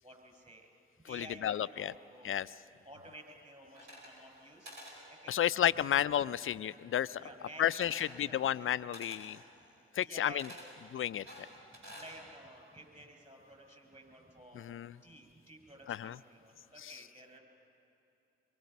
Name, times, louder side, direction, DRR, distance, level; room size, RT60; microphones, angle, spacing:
voice 1, 0.0-0.7 1.0-2.3 2.6-4.7 5.1-5.4 5.8-5.9 7.1-8.6 9.4-9.6 9.9-10.7 11.7-14.6 15.0-17.4, right 1 dB, 25° right, 3 dB, 5.4 m, -53 dB
voice 2, 1.1-1.9 2.2-2.5 5.3-7.2 7.6-9.4 10.0-10.5 10.9-11.2 14.6-14.9 15.9-16.2 16.8-16.9, left 10 dB, 45° left, 17 dB, 0.5 m, -32 dB
sound 1, 3.7-4.4 4.6-5.0 7.7-8.2 8.9-9.2 10.4-10.7 11.3-12.1, equal, 90° right, 5.0 m, -50 dB
24.5 x 22.5 x 5.4 m, 2.8 s
hypercardioid pair, 40°, 30 cm